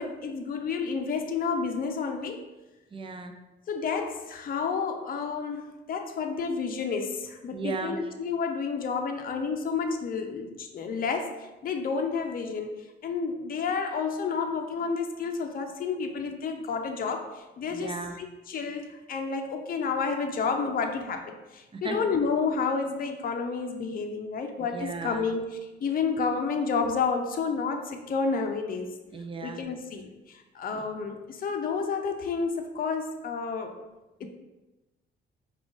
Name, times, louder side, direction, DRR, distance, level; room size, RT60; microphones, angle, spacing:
voice 1, 0.0-2.4 3.7-12.8 13.0-29.0 29.4-33.7 34.2-34.3, left 5 dB, 45° left, 4 dB, 0.6 m, -30 dB
voice 2, 2.9-3.3 7.5-7.9 17.7-18.1 21.7-22.0 24.7-25.2 29.1-29.6 30.7-30.8, right 4 dB, 25° right, 6 dB, 0.5 m, -35 dB
4.9 x 2.4 x 3.8 m, 1.1 s
cardioid pair, 90°, 20 cm